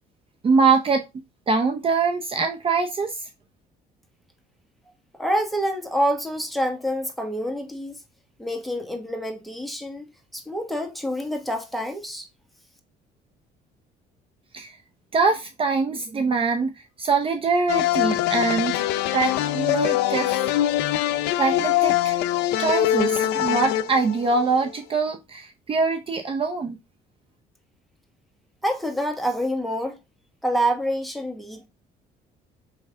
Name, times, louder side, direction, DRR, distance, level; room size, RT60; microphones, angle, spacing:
voice 1, 0.4-1.0 1.5-3.2 14.5-14.7 15.1-16.7 17.0-18.9 19.1-20.5 21.4-22.2 22.6-26.8, right 4 dB, 35° right, 0.6 m, -23 dB
voice 2, 5.2-8.0 8.4-10.0 10.3-12.3 28.6-30.0 30.4-31.7, equal, ahead, 1.1 m, -27 dB
sound 1, 17.7-24.7, left 13 dB, 90° left, 0.4 m, -23 dB
4.7 x 3.3 x 3.3 m
cardioid pair, 110°, 17 cm